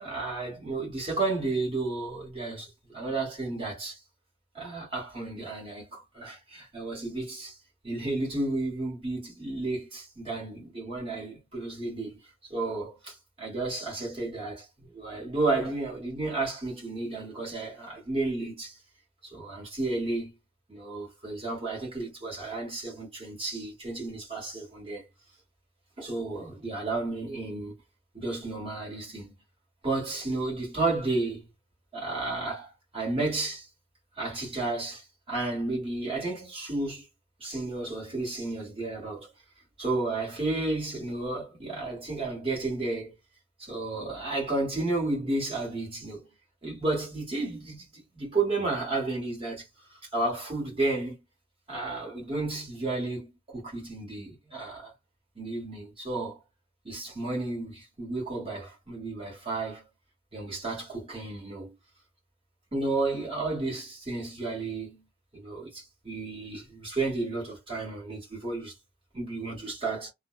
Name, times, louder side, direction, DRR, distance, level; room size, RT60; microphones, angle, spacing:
voice 1, 0.0-4.0 4.5-7.6 7.8-12.2 12.5-18.8 19.2-20.4 20.7-25.0 26.0-27.8 28.1-29.3 29.8-31.5 31.9-33.7 34.2-37.0 37.4-39.3 39.8-43.1 43.6-46.3 46.6-49.7 50.1-51.2 51.7-54.9 55.3-56.4 56.8-59.8 60.3-61.7 62.7-65.0 65.3-68.7 69.1-70.1, right 2 dB, 30° right, 1.4 m, -32 dB
2.5 x 2.1 x 2.3 m
head